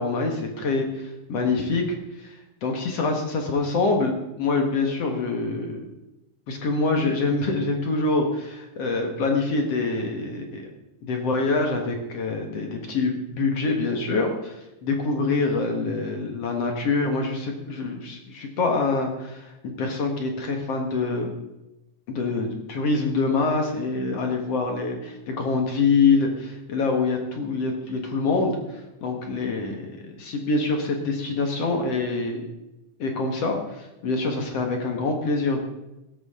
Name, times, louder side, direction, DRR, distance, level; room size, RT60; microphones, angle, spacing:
voice 1, 0.0-5.8 6.5-10.7 11.0-21.3 22.1-32.4 33.0-35.7, left 3 dB, 55° left, 2 dB, 2.3 m, -25 dB
16.5 x 13.5 x 3.7 m, 0.94 s
omnidirectional pair, 3.9 m